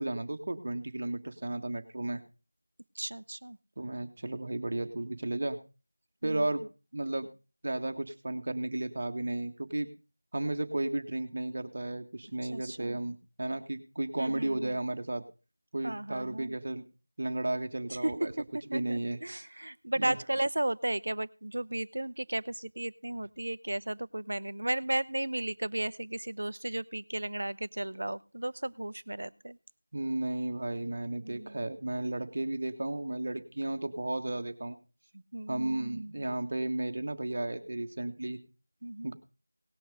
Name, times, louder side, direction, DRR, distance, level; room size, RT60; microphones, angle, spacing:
voice 1, 0.0-2.2 3.8-5.6 6.2-6.6 6.9-7.3 7.6-9.9 10.3-15.2 15.7-16.8 17.2-18.3 18.7-19.2 20.0-20.2 29.9-34.8 35.5-38.4 39.0-39.1, right 2 dB, 40° right, 7 dB, 1.5 m, -33 dB
voice 2, 3.0-3.6 6.2-6.5 12.5-13.0 14.2-14.7 15.8-16.6 18.0-18.4 18.7-29.6 31.2-31.6 35.3-36.2 38.8-39.1, right 1 dB, 60° right, 18 dB, 0.6 m, -34 dB
18.5 x 6.2 x 5.3 m, 0.33 s
figure-of-eight pair, 175°, 0 cm